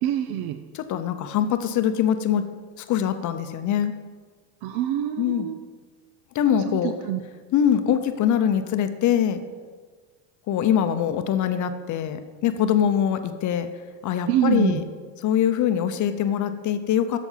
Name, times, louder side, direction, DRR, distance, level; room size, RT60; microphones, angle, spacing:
voice 1, 0.0-0.6 4.6-5.6 6.7-6.8 7.1-7.2 14.3-14.8, right 11 dB, 50° right, 8 dB, 0.5 m, -25 dB
voice 2, 0.7-2.4 2.8-3.9 5.2-5.5 6.3-6.9 7.5-9.4 10.5-13.7 14.0-14.8 15.2-17.2, left 9 dB, 35° left, 9 dB, 0.7 m, -23 dB
7.1 x 7.0 x 5.6 m, 1.5 s
supercardioid pair, 115°, 50 cm